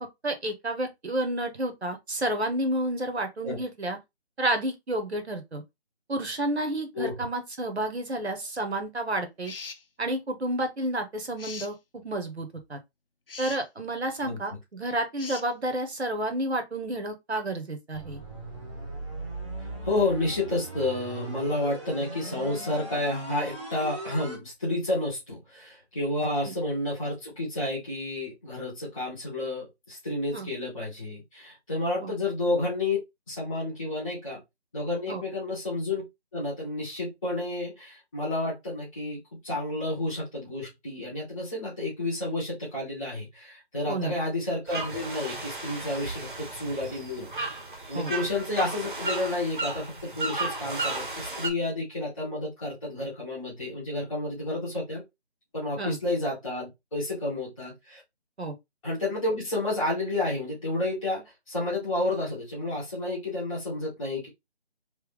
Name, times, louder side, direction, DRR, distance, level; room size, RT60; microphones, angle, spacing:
voice 1, 0.2-4.0 4.4-5.6 6.1-9.5 10.0-12.8 13.4-18.2 26.4-26.5 30.3-30.5 32.0-32.1 35.1-35.2 43.9-44.1 47.9-48.1 55.8-56.0 58.4-58.5, right 1 dB, 75° right, 1.4 m, -30 dB
sound 1, 9.4-9.8 11.4-11.7 13.3-13.6 15.2-15.5, left 4 dB, 60° left, 0.6 m, -40 dB
voice 2, 14.2-14.6 19.8-33.0 33.3-34.4 34.7-36.0 36.3-47.5 47.9-55.0 55.5-58.0 58.8-64.3, left 2 dB, ahead, 0.9 m, -30 dB
sound 2, 17.9-24.4, right 2 dB, 25° right, 1.1 m, -39 dB
sound 3, 44.7-51.5, right 3 dB, 50° right, 1.2 m, -34 dB
3.4 x 3.1 x 3.4 m
figure-of-eight pair, 165°, 33 cm